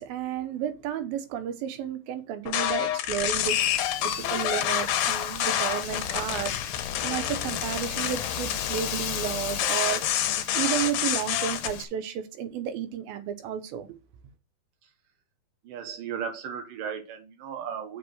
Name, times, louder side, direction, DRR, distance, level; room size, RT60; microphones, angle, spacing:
voice 1, 0.0-3.6 4.0-6.5 7.0-14.0, right 9 dB, 90° right, 2.8 m, -32 dB
sound 1, 2.5-11.7, left 11 dB, 85° left, 2.6 m, -28 dB
Wind, 3.4-11.8, left 9 dB, 65° left, 2.2 m, -37 dB
voice 2, 15.6-18.0, right 7 dB, 70° right, 2.9 m, -35 dB
6.6 x 5.3 x 6.4 m
omnidirectional pair, 4.1 m